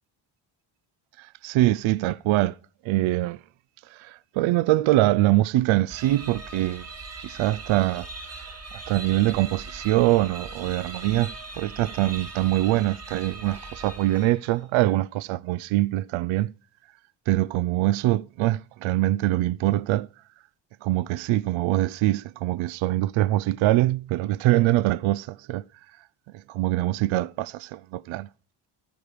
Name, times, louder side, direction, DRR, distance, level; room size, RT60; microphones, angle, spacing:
voice 1, 1.2-2.6 2.8-3.4 3.9-6.8 7.2-8.1 8.7-16.5 17.3-20.1 20.8-25.6 26.3-28.3, right 16 dB, 70° right, 0.5 m, -23 dB
sound 1, 5.9-14.6, right 3 dB, 30° right, 1.8 m, -40 dB
13.0 x 9.4 x 5.0 m
cardioid pair, 80°, 50 cm